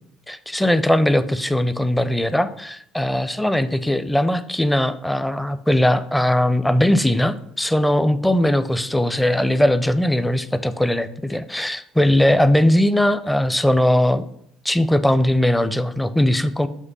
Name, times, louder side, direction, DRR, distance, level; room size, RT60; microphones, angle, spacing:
voice 1, 0.3-14.2 14.6-16.7, left 1 dB, 5° left, 13 dB, 0.5 m, -19 dB
7.3 x 3.2 x 5.4 m, 0.68 s
hypercardioid pair, 70°, 0 cm